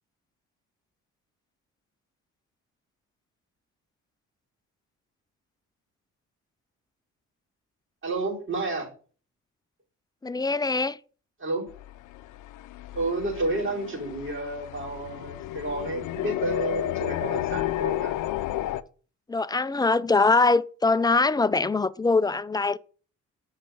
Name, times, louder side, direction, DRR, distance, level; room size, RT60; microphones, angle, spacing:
voice 1, 8.0-8.9 11.4-11.7 12.9-18.1, right 2 dB, 40° right, 4.7 m, -30 dB
voice 2, 10.2-11.0 19.3-22.8, left 3 dB, 15° left, 0.4 m, -23 dB
sound 1, 11.7-18.8, left 14 dB, 80° left, 0.6 m, -32 dB
7.4 x 5.7 x 5.3 m
cardioid pair, 90°, 30 cm